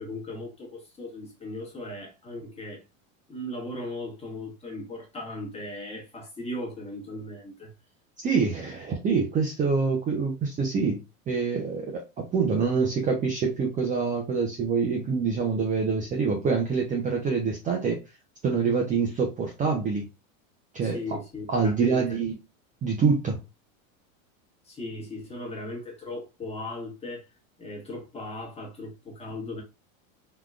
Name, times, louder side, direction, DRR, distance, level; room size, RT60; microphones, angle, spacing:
voice 1, 0.0-2.8 3.3-7.7 20.8-22.2 24.6-27.3 27.6-29.6, left 1 dB, 15° left, 1.1 m, -37 dB
voice 2, 8.2-18.0 18.4-20.1 20.7-21.0 21.5-22.4 22.8-23.4, right 5 dB, 20° right, 0.5 m, -26 dB
3.6 x 2.2 x 2.3 m
supercardioid pair, 125°, 41 cm